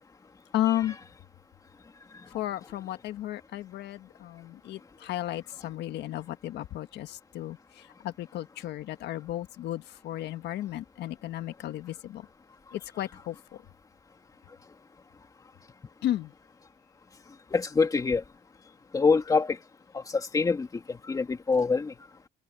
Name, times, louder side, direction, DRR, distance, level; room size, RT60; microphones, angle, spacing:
voice 1, 0.5-0.9 2.3-7.6 8.0-12.3 12.7-13.3 16.0-16.3, left 13 dB, 55° left, 1.7 m, -33 dB
voice 2, 17.5-18.2 18.9-19.6 19.9-21.9, left 4 dB, 15° left, 2.7 m, -25 dB
cardioid pair, 165°, 21 cm